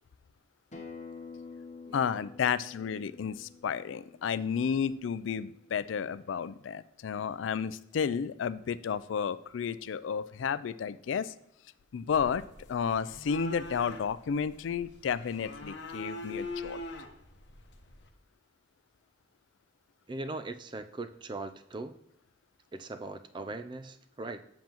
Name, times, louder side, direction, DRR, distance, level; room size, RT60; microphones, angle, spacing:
Acoustic guitar, 0.7-5.9, left 4 dB, 35° left, 1.0 m, -49 dB
voice 1, 1.9-11.3 11.9-12.4 12.7-16.8, left 7 dB, 85° left, 15 dB, 0.4 m, -32 dB
sound 1, 12.1-18.1, left 2 dB, 65° left, 0.9 m, -42 dB
voice 2, 20.1-21.9 22.7-24.4, right 2 dB, 25° right, 10 dB, 0.4 m, -40 dB
7.4 x 7.0 x 3.0 m, 0.82 s
head